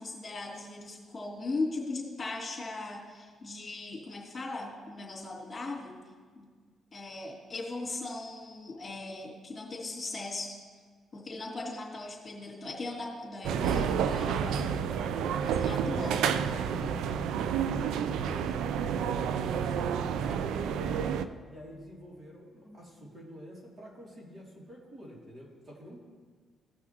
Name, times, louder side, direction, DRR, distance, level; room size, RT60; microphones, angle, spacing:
voice 1, 0.0-6.0 6.3-6.5 6.9-10.6 11.1-14.5 15.4-16.3 22.6-22.8, left 2 dB, 30° left, -4 dB, 3.1 m, -38 dB
sound 1, 13.4-21.2, right 7 dB, 85° right, 0.4 m, -30 dB
voice 2, 14.1-15.5 15.8-16.1 16.5-17.1 17.6-21.2 21.5-26.0, equal, 35° right, -3 dB, 2.7 m, -47 dB
17.0 x 6.0 x 3.0 m, 1.5 s
cardioid pair, 90°, 0 cm